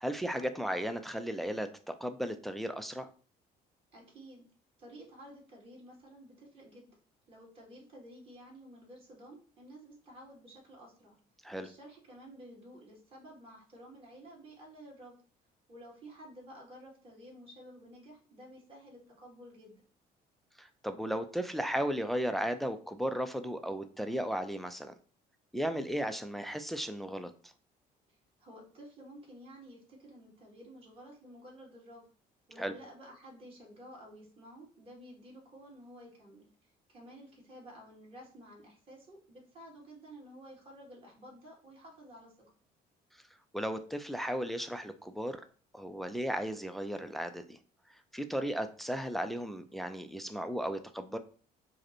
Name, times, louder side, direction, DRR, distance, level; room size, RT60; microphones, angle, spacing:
voice 1, 0.0-3.1 11.4-11.7 20.6-24.9 25.5-27.3 32.6-32.7 43.5-45.4 45.7-47.6 47.9-51.2, equal, ahead, 8 dB, 0.4 m, -35 dB
voice 2, 3.9-4.5 4.8-6.9 7.3-11.2 11.6-15.1 15.7-19.8 28.1-32.0 32.5-42.3, equal, 35° right, -3 dB, 2.1 m, -52 dB
4.8 x 2.1 x 4.4 m, 0.41 s
cardioid pair, 110°, 17 cm